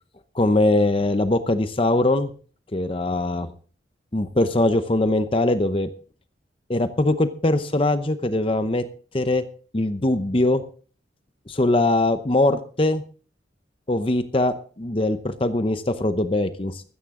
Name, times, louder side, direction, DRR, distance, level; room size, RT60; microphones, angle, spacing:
voice 1, 0.3-2.3 2.7-3.5 4.1-5.9 6.7-8.8 9.1-9.4 9.7-10.6 11.5-13.0 13.9-16.8, left 2 dB, 30° left, 10 dB, 0.8 m, -21 dB
15.5 x 13.5 x 3.7 m, 0.41 s
head